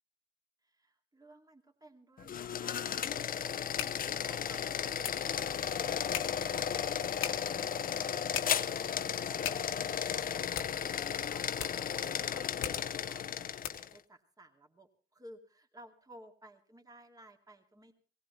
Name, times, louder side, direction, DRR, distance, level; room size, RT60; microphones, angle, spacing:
voice 1, 0.6-3.5 4.1-6.3 6.5-13.7 13.9-18.0, right 1 dB, 20° right, 3 dB, 2.4 m, -58 dB
sound 1, 2.2-14.0, left 8 dB, 45° left, 0.7 m, -34 dB
sound 2, 5.9-14.0, left 11 dB, 90° left, 1.3 m, -44 dB
18.5 x 15.5 x 4.0 m, 0.41 s
supercardioid pair, 75°, 20 cm